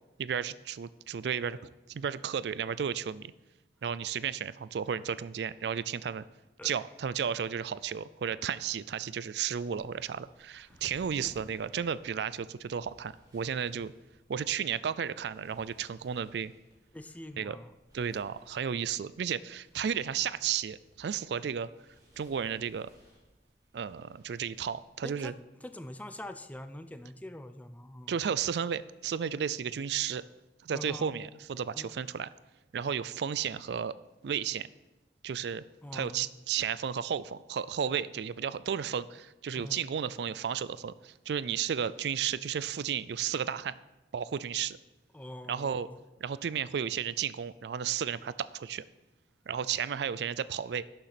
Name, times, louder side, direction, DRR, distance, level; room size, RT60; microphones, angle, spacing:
voice 1, 0.2-3.3 3.8-6.2 6.6-13.9 14.3-16.5 17.4-17.6 17.9-21.7 22.2-22.9 23.7-25.3 28.1-30.2 30.6-32.3 32.7-34.0 34.2-34.7 35.2-35.6 35.9-43.7 44.1-44.8 45.5-45.9 46.2-48.8 49.5-50.8, right 8 dB, 65° right, 17 dB, 0.4 m, -33 dB
sound 1, 9.8-25.3, equal, 20° right, 3.2 m, -62 dB
voice 2, 16.9-17.7 25.0-25.3 25.6-28.3 30.7-31.1 31.7-31.9 35.8-36.3 39.6-39.8 45.1-46.0, left 1 dB, 10° left, 9 dB, 0.5 m, -44 dB
11.0 x 6.8 x 5.8 m, 1.0 s
head